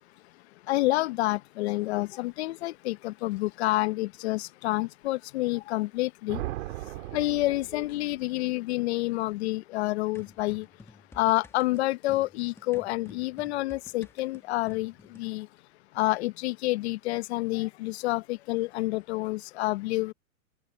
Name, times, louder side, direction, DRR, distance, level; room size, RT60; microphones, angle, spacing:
voice 1, 0.7-6.4 7.1-10.7 11.2-15.5 16.0-20.1, left 19 dB, 45° left, 0.9 m, -28 dB
sound 1, 6.3-8.3, right 17 dB, 55° right, 3.1 m, -38 dB
sound 2, 10.1-15.3, left 3 dB, 5° left, 1.8 m, -52 dB
open air
hypercardioid pair, 145°, 44 cm